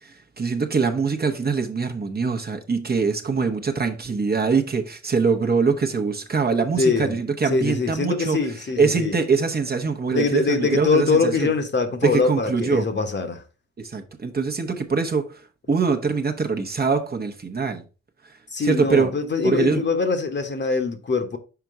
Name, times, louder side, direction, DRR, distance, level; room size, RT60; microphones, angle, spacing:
voice 1, 0.0-8.4 8.8-11.5 12.0-12.9 13.8-17.8 18.3-19.1 19.4-19.8, right 5 dB, 30° right, 1.0 m, -23 dB
voice 2, 6.8-7.2 7.5-9.2 10.1-13.4 18.5-21.4, left 4 dB, 40° left, 1.1 m, -23 dB
5.9 x 4.5 x 3.7 m
cardioid pair, 70°, 30 cm